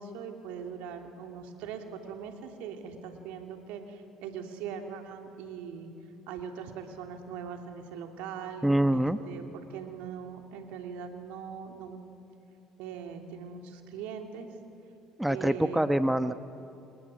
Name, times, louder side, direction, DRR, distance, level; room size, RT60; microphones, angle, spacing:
voice 1, 0.0-5.9 6.3-12.0 12.8-14.5 15.3-15.9, right 7 dB, 65° right, 4 dB, 3.0 m, -41 dB
voice 2, 8.6-9.2 15.2-16.3, right 1 dB, 5° right, 11 dB, 1.1 m, -25 dB
28.5 x 27.5 x 7.6 m, 2.7 s
hypercardioid pair, 60°, 2 cm